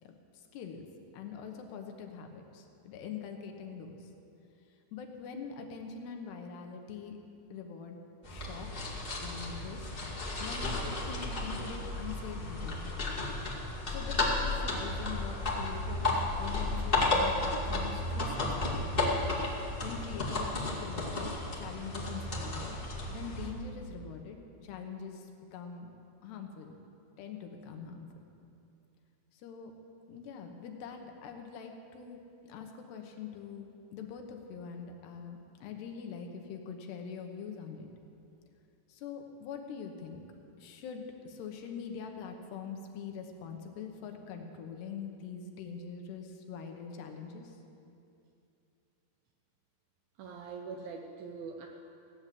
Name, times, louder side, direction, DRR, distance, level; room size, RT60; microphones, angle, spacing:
voice 1, 0.0-0.9 1.1-4.1 4.9-7.2 7.5-8.7 9.2-9.9 10.4-13.0 13.9-19.0 19.8-22.8 23.1-25.9 26.2-26.7 27.2-28.1 29.3-29.7 30.1-37.9 38.9-40.2 40.6-47.6, left 6 dB, 75° left, 4 dB, 3.1 m, -44 dB
sound 1, 8.2-23.5, left 2 dB, 30° left, 0.9 m, -33 dB
voice 2, 50.2-51.7, right 5 dB, 75° right, 2 dB, 2.2 m, -43 dB
17.0 x 9.5 x 7.6 m, 2.6 s
omnidirectional pair, 5.0 m